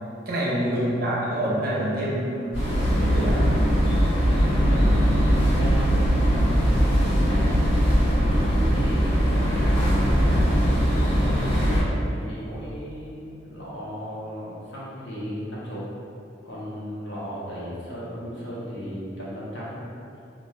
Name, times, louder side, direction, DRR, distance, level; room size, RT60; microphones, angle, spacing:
voice 1, 0.3-3.5 4.7-5.0 5.5-5.6, right 1 dB, 50° right, -6 dB, 0.6 m, -27 dB
sound 1, 2.5-11.8, equal, 85° left, 1.3 m, -20 dB
voice 2, 4.7-5.1 5.4-7.6 8.1-9.9 10.1-10.6 11.2-15.8 16.4-19.8, equal, 65° left, -8 dB, 0.8 m, -36 dB
2.3 x 2.3 x 3.2 m, 2.6 s
head